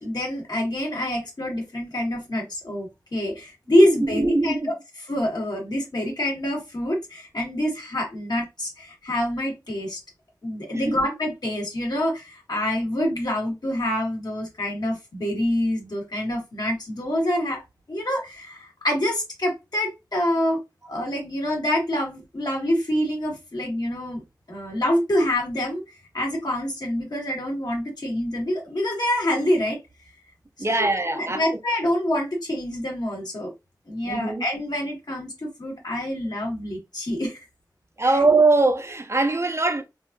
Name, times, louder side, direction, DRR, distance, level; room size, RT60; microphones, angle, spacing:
voice 1, 0.0-10.0 10.4-17.6 17.9-20.6 20.9-24.2 24.5-25.8 26.1-29.8 30.6-30.9 31.1-33.5 33.9-37.4 38.0-38.2, left 1 dB, 65° left, 1.7 m, -26 dB
voice 2, 4.0-4.7 10.7-11.0 30.6-31.4 34.1-34.4 38.0-39.8, right 3 dB, 35° right, 0.5 m, -21 dB
3.5 x 2.6 x 2.6 m
wide cardioid pair, 65°, 8 cm